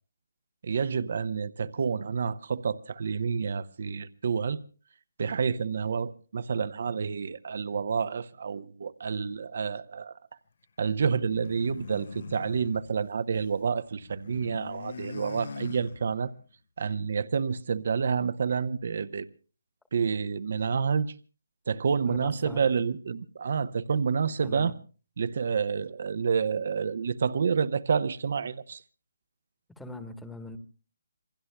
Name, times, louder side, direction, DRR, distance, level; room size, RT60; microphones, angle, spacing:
voice 1, 0.6-4.6 5.2-10.2 10.8-16.3 16.8-19.3 19.9-21.2 21.7-24.7 25.2-28.8, right 6 dB, 55° right, 0.8 m, -29 dB
sound 1, 11.2-13.6 13.9-16.4, left 5 dB, 55° left, 0.9 m, -43 dB
voice 2, 22.1-22.6 24.4-24.7 29.7-30.6, left 2 dB, 5° left, 1.3 m, -41 dB
27.5 x 22.0 x 2.2 m
figure-of-eight pair, 155°, 0 cm